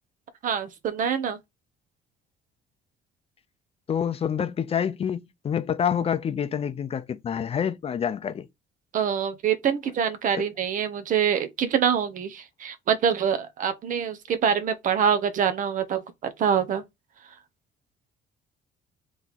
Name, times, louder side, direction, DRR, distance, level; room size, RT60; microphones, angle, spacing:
voice 1, 0.4-1.4 8.9-16.8, right 8 dB, 50° right, 0.9 m, -25 dB
voice 2, 3.9-8.5, left 8 dB, 35° left, 0.6 m, -27 dB
3.7 x 3.1 x 4.1 m
cardioid pair, 110°, 17 cm